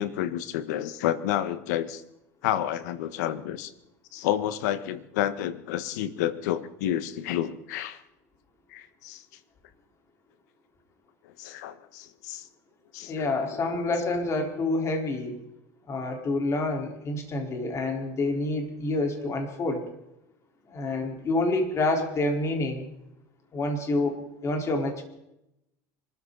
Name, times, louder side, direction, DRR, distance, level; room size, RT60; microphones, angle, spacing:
voice 1, 0.0-2.0 2.4-3.7 4.1-8.0 8.7-9.2 11.4-12.4 12.9-13.3 13.5-13.6, left 11 dB, 80° left, 14 dB, 1.4 m, -30 dB
voice 2, 13.1-15.4 15.9-19.9 20.7-22.9 23.5-25.0, left 2 dB, 30° left, 3 dB, 4.1 m, -28 dB
25.0 x 14.0 x 4.0 m, 0.84 s
supercardioid pair, 115°, 9 cm